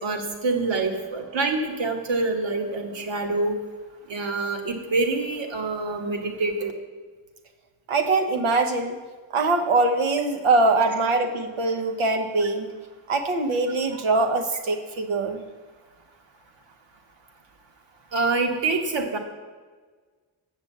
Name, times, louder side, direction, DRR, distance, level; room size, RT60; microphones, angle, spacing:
voice 1, 0.0-3.5 4.1-6.7 18.1-19.2, right 3 dB, 65° right, 3 dB, 1.5 m, -26 dB
voice 2, 7.9-9.0 9.3-12.7 13.1-15.4, right 3 dB, 85° right, 5 dB, 1.1 m, -23 dB
7.9 x 6.4 x 7.3 m, 1.4 s
wide cardioid pair, 105°, 48 cm